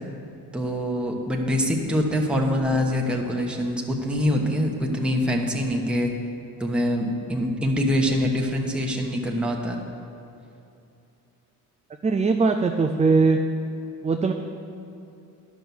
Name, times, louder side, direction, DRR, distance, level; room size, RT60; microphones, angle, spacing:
voice 1, 0.5-6.1 6.6-9.8, equal, 5° right, -1 dB, 1.2 m, -24 dB
voice 2, 12.0-13.4 14.0-14.3, right 4 dB, 20° right, 4 dB, 0.4 m, -20 dB
11.0 x 6.2 x 7.0 m, 2.8 s
cardioid pair, 105°, 38 cm